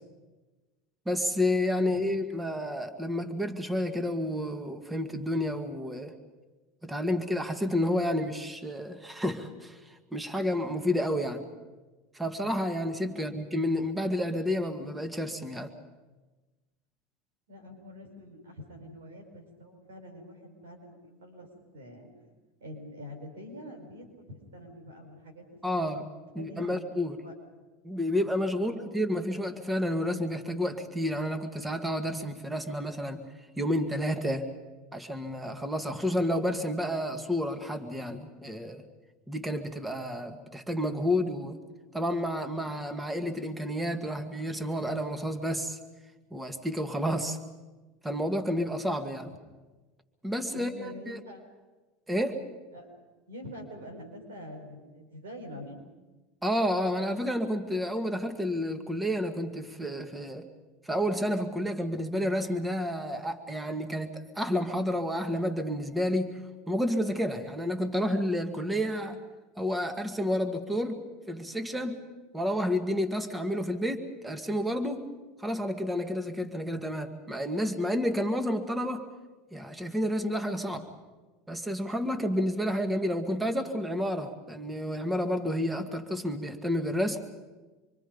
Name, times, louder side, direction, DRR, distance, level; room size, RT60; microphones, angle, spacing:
voice 1, 1.1-6.1 6.8-11.5 12.1-15.7 25.6-26.0 26.3-27.2 27.8-33.2 33.6-34.5 34.9-38.8 39.3-41.6 41.9-45.8 46.3-47.4 48.0-49.3 50.2-51.2 52.1-52.4 56.4-60.5 60.8-66.4 66.7-69.2 69.6-71.0 71.3-72.0 72.3-75.1 75.4-79.0 79.5-80.9 81.5-87.2, equal, 10° right, 6 dB, 2.1 m, -30 dB
voice 2, 17.5-21.5 21.7-22.1 22.6-27.3 28.6-28.9 50.5-51.5 52.7-52.9 53.3-55.8, left 1 dB, 90° right, 4 dB, 5.3 m, -46 dB
26.0 x 23.5 x 5.4 m, 1.2 s
hypercardioid pair, 100°, 0 cm